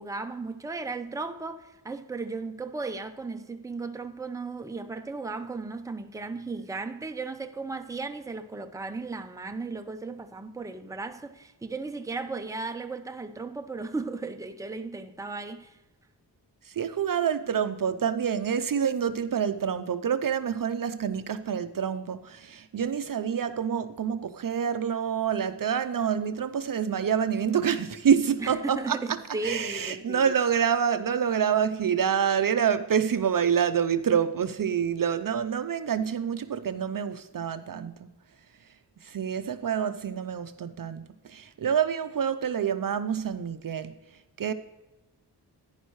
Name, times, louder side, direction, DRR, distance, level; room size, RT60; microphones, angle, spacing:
voice 1, 0.0-15.8 28.4-30.2, right 3 dB, 10° right, 0.6 m, -35 dB
voice 2, 16.7-29.2 29.4-38.1 39.0-43.9 44.4-44.5, right 8 dB, 50° right, 0.6 m, -27 dB
11.0 x 10.5 x 3.1 m
wide cardioid pair, 80°, 42 cm